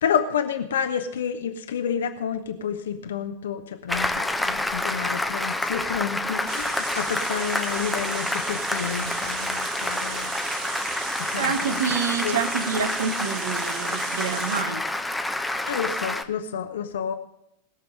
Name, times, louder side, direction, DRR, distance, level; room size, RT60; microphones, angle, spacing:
voice 1, 0.0-10.3 11.2-11.8 12.2-12.4 15.6-17.1, left 7 dB, 60° left, 7 dB, 0.8 m, -29 dB
Applause, 3.9-16.2, left 2 dB, 5° left, 0.8 m, -28 dB
sound 1, 6.5-14.6, right 8 dB, 45° right, 1.1 m, -36 dB
voice 2, 11.4-14.8, right 6 dB, 65° right, 9 dB, 1.5 m, -27 dB
20.5 x 6.9 x 5.2 m, 0.77 s
figure-of-eight pair, 90°, 0 cm